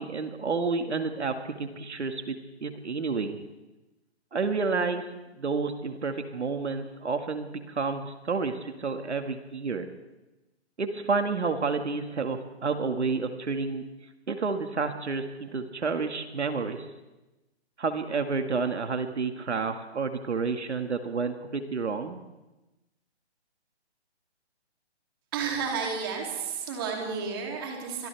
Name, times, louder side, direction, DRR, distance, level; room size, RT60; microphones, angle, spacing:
voice 1, 0.0-3.4 4.3-5.0 5.4-9.9 10.8-13.8 14.3-16.9 17.8-22.2, right 4 dB, 80° right, 6 dB, 2.1 m, -30 dB
voice 2, 25.3-28.1, right 5 dB, 20° right, 0 dB, 3.1 m, -32 dB
30.0 x 25.0 x 3.5 m, 1.0 s
hypercardioid pair, 175°, 34 cm